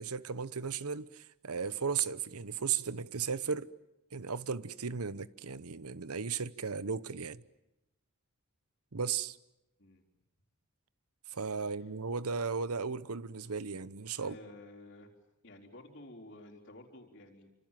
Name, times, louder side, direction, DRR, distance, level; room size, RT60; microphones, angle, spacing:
voice 1, 0.0-3.7 4.1-7.4 8.9-9.4 11.3-14.4, right 6 dB, 85° right, 1.0 m, -35 dB
voice 2, 14.2-15.1 15.4-17.5, left 1 dB, 55° left, 4.1 m, -52 dB
29.5 x 26.5 x 7.6 m
head